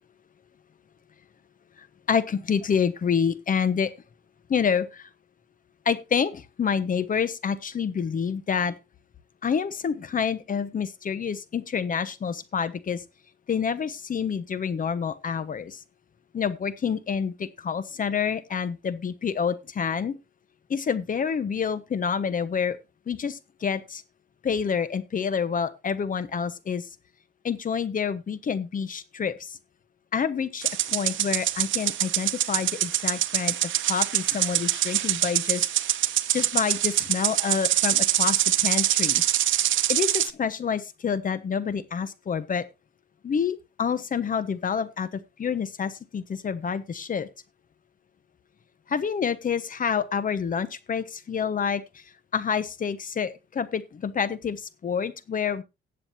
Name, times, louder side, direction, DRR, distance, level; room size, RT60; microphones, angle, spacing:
voice 1, 1.8-3.9 4.5-5.1 5.8-8.7 9.4-13.0 13.5-15.8 16.3-20.2 20.7-22.8 23.1-24.0 24.4-26.9 27.4-29.6 30.1-33.6 33.9-35.7 36.3-39.2 39.9-42.6 43.2-47.3 48.9-51.8 52.3-55.6, left 6 dB, 45° left, 15 dB, 1.1 m, -28 dB
sound 1, 30.6-40.3, right 13 dB, 75° right, 0.8 m, -25 dB
18.0 x 7.6 x 2.8 m, 0.24 s
cardioid pair, 90°, 20 cm